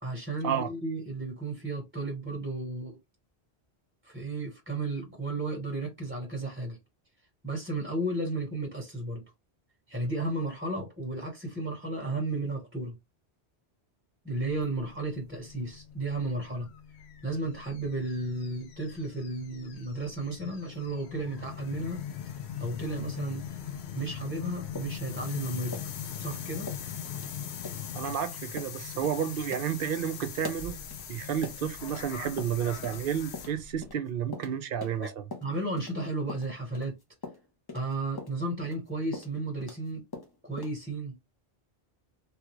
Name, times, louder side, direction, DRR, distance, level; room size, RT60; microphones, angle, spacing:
voice 1, 0.0-3.0 4.0-6.8 7.4-9.2 9.9-13.0 14.2-16.7 17.2-22.0 22.6-23.6 23.9-25.9 26.2-26.7 35.0-35.1 35.4-37.0 37.7-40.0 40.4-41.1, right 2 dB, 10° right, 1.0 m, -33 dB
sound 1, 14.4-33.9, left 8 dB, 80° left, 0.9 m, -41 dB
sound 2, 24.8-26.3 26.7-26.9 27.1-27.3 27.6-27.8 28.1-28.2 28.6-28.8 29.0-29.2 29.5-32.1 32.4-33.0 33.3-36.0 36.3-39.9 40.1-40.8, left 3 dB, 25° left, 0.6 m, -42 dB
voice 2, 27.9-30.8 31.1-35.2, right 8 dB, 60° right, 0.7 m, -31 dB
3.3 x 2.4 x 3.0 m
omnidirectional pair, 1.1 m